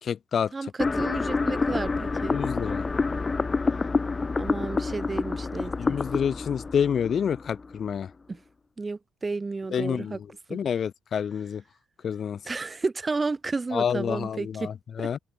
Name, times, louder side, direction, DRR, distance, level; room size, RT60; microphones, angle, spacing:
voice 1, 0.0-0.7 2.3-2.8 5.8-8.1 9.7-11.6 12.0-12.4 13.7-15.2, left 7 dB, 55° left, 1.6 m, -28 dB
voice 2, 0.5-2.4 4.4-6.0 8.3-8.4 8.8-10.2 10.5-10.6 12.5-14.7 15.0-15.1, right 3 dB, 25° right, 2.1 m, -32 dB
sound 1, 0.8-7.8, left 4 dB, 25° left, 1.4 m, -28 dB
open air
cardioid pair, 90°, 0 cm